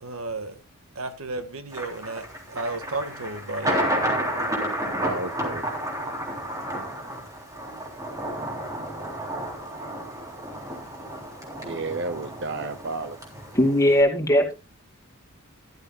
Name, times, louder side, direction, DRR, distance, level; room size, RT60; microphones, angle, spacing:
voice 1, 0.0-0.6 0.9-3.7, right 2 dB, 70° right, 1.7 m, -33 dB
Thunder, 1.7-14.0, right 1 dB, 15° right, 3.5 m, -31 dB
voice 2, 5.0-5.6 11.6-13.2, right 3 dB, 55° right, 0.8 m, -31 dB
voice 3, 13.5-14.5, left 1 dB, 15° left, 2.7 m, -19 dB
14.5 x 12.0 x 2.4 m
head